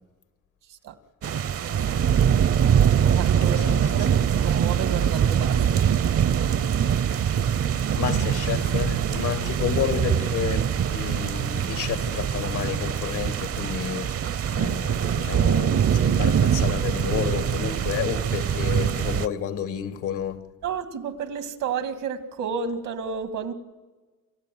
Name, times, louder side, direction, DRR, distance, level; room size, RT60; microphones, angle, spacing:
sound 1, 1.2-19.3, right 8 dB, 50° right, 0.8 m, -23 dB
voice 1, 1.6-2.1 3.1-4.1 4.4-6.6 20.6-23.5, right 7 dB, 90° right, 2.3 m, -32 dB
voice 2, 8.0-20.4, left 8 dB, 85° left, 2.1 m, -30 dB
29.5 x 14.5 x 9.4 m
cardioid pair, 90°, 30 cm